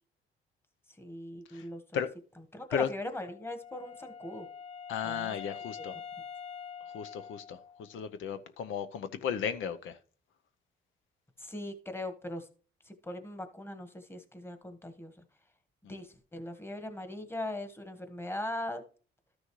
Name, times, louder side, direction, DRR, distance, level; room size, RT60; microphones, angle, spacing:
voice 1, 1.0-1.8 2.5-4.5 5.0-5.3 5.8-5.9 11.4-12.5 12.8-15.1 15.9-18.8, left 1 dB, 10° left, 1.4 m, -40 dB
Wind instrument woodwind instrument, 3.2-8.0, left 7 dB, 30° left, 0.4 m, -45 dB
voice 2, 4.9-5.9 6.9-10.0 15.8-16.0, left 7 dB, 80° left, 0.7 m, -35 dB
13.0 x 6.2 x 3.1 m
cardioid pair, 90°, 20 cm